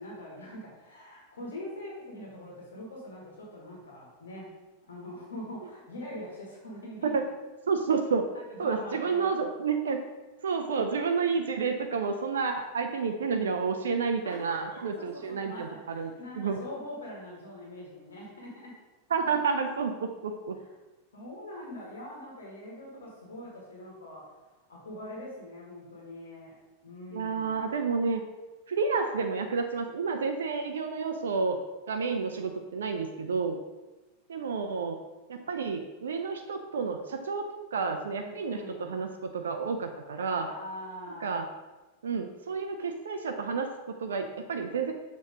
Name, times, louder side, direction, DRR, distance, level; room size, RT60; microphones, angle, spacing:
voice 1, 0.0-4.5 4.8-7.1 8.3-9.4 14.2-18.7 21.1-24.2 24.7-26.5 26.8-27.7 38.1-38.9 40.5-41.4, left 1 dB, 65° left, -3 dB, 1.4 m, -43 dB
voice 2, 7.7-8.3 8.6-10.0 10.4-16.6 19.1-20.6 27.1-28.2 28.7-31.6 31.9-33.6 34.3-35.0 35.3-37.4 37.7-40.5 41.2-41.5 42.0-44.9, right 5 dB, 65° right, 5 dB, 0.4 m, -30 dB
6.3 x 3.0 x 4.9 m, 1.2 s
figure-of-eight pair, 90°, 0 cm